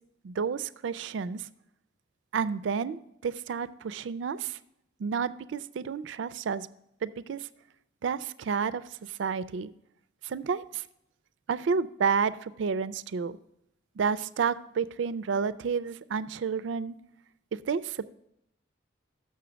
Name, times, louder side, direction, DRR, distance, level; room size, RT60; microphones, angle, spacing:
voice 1, 0.2-1.5 2.3-4.6 5.0-6.7 7.0-7.4 8.0-9.7 10.2-10.8 11.5-13.4 14.0-17.0 17.5-18.1, right 6 dB, 80° right, 15 dB, 0.4 m, -30 dB
6.8 x 6.5 x 5.0 m, 0.80 s
head